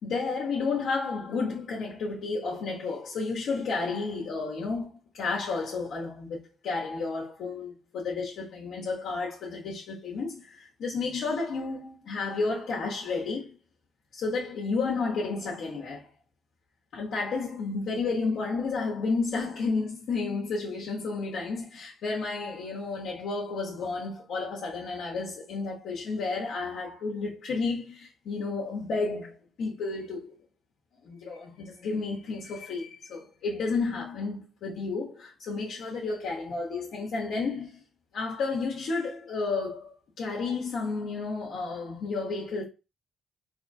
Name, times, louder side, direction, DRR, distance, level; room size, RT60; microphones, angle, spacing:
voice 1, 0.0-13.5 14.1-16.1 16.9-30.4 31.0-37.8 38.1-42.6, left 4 dB, 75° left, 1.0 m, -32 dB
3.7 x 3.0 x 2.6 m
cardioid pair, 90°, 0 cm